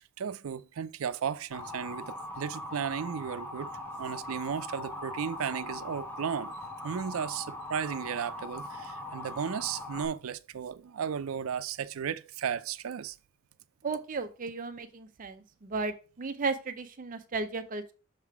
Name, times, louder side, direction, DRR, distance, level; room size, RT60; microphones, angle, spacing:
voice 1, 0.0-3.7 4.0-6.6 6.8-13.2, right 7 dB, 90° right, 0.4 m, -35 dB
Motor vehicle (road) / Siren, 1.5-10.0, left 1 dB, 10° left, 0.9 m, -40 dB
voice 2, 13.8-17.9, right 4 dB, 40° right, 0.5 m, -35 dB
6.5 x 3.6 x 4.7 m
head